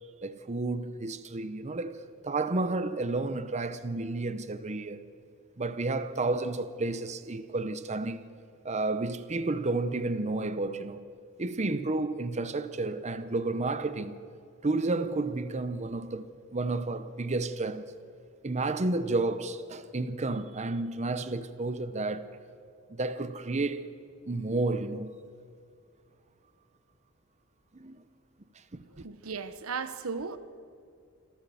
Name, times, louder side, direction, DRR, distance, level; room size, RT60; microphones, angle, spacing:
voice 1, 0.2-5.0 5.6-8.2 8.6-11.1 11.4-14.2 14.6-17.8 18.4-22.4 23.0-23.8 24.3-25.1 27.7-28.0 28.7-29.0, right 2 dB, 35° right, 0.7 m, -31 dB
voice 2, 28.9-30.4, right 5 dB, 85° right, 1.0 m, -36 dB
27.5 x 13.5 x 7.1 m
head